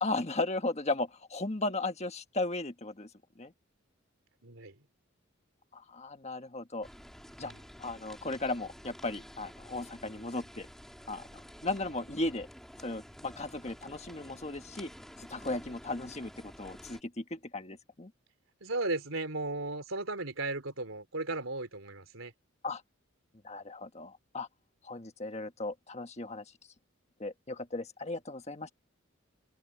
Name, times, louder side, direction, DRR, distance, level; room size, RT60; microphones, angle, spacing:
voice 1, 0.0-3.1 3.4-3.5 5.7-6.9 7.4-7.5 7.8-10.7 11.1-11.2 11.6-12.5 12.8-14.9 15.2-18.1 22.6-22.8 23.4-24.5 24.8-26.4 27.2-28.7, left 2 dB, 35° left, 1.4 m, -36 dB
voice 2, 4.4-4.8 7.4-7.6 18.6-22.3, right 2 dB, 85° right, 3.4 m, -35 dB
sound 1, 6.8-17.0, equal, ahead, 2.8 m, -51 dB
head